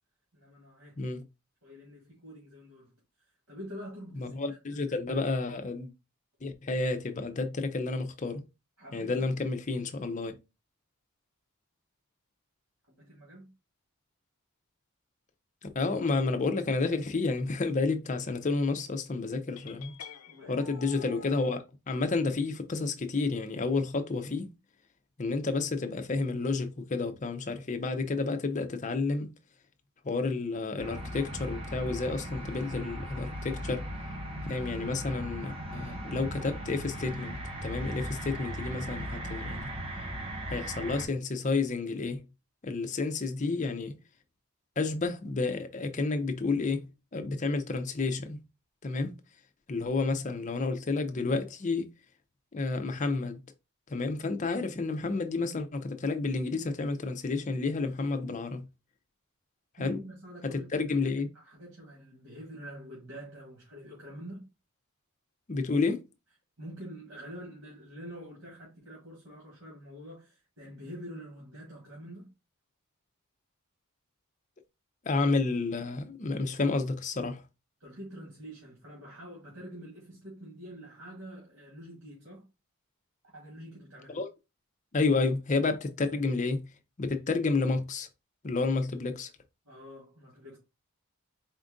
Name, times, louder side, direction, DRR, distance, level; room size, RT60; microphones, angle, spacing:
voice 1, 0.3-1.0 1.6-2.9 3.5-5.2 8.8-9.5 12.9-13.5 20.3-20.7 59.8-61.0 61.3-64.5 66.6-72.3 77.8-82.4 83.3-84.2 89.7-90.6, equal, 70° right, 1.9 m, -46 dB
voice 2, 4.1-5.9 6.4-8.4 8.9-10.4 15.8-19.9 20.5-24.5 25.2-29.3 30.0-33.8 34.4-39.7 40.5-42.2 42.6-43.9 44.8-46.9 47.1-48.4 48.8-49.1 49.7-51.9 52.5-53.4 53.9-58.6 59.8-60.0 60.4-61.3 65.5-66.0 75.0-77.4 84.1-84.3 84.9-86.6 87.0-88.1 88.4-89.3, left 3 dB, 35° left, 0.5 m, -30 dB
sound 1, 19.6-21.5, left 6 dB, 85° left, 0.5 m, -47 dB
sound 2, 30.8-41.1, equal, 25° right, 0.8 m, -38 dB
4.3 x 2.5 x 3.7 m
head